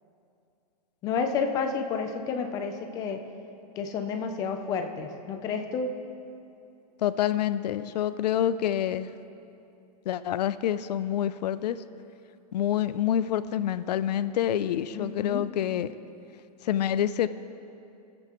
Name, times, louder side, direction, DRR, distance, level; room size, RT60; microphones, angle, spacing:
voice 1, 1.0-3.2 3.8-5.9 14.9-15.5, left 5 dB, 15° left, 5 dB, 0.5 m, -30 dB
voice 2, 7.0-9.1 10.1-11.8 12.5-15.9 16.6-17.3, left 10 dB, 85° left, 13 dB, 0.4 m, -27 dB
21.5 x 7.9 x 3.0 m, 2.7 s
supercardioid pair, 165°, 21 cm